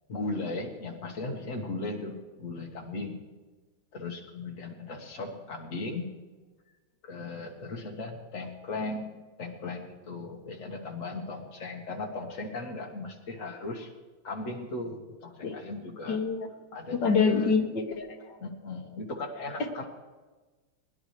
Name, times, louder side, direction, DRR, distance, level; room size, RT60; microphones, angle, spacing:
voice 1, 0.1-3.2 3.9-6.1 7.0-13.9 14.2-16.2 16.7-17.6 18.4-19.9, left 3 dB, 40° left, 1 dB, 1.8 m, -37 dB
voice 2, 16.1-16.5 17.0-18.2, left 5 dB, 55° left, 3 dB, 1.9 m, -25 dB
21.0 x 11.0 x 3.3 m, 1.3 s
omnidirectional pair, 2.4 m